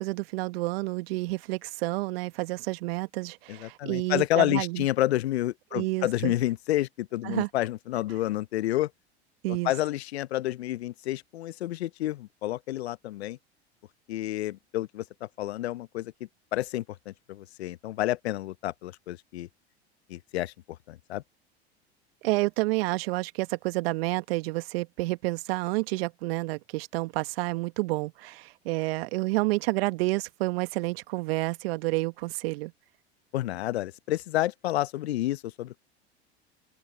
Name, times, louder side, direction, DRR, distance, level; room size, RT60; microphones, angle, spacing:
voice 1, 0.0-4.9 5.7-6.3 7.2-7.5 9.4-9.7 22.2-32.7, right 21 dB, 65° right, 1.5 m, -29 dB
voice 2, 3.5-8.9 9.5-13.4 14.1-16.1 16.5-19.5 20.1-20.5 20.9-21.2 33.3-35.8, left 15 dB, 75° left, 0.9 m, -29 dB
open air
hypercardioid pair, 80°, 33 cm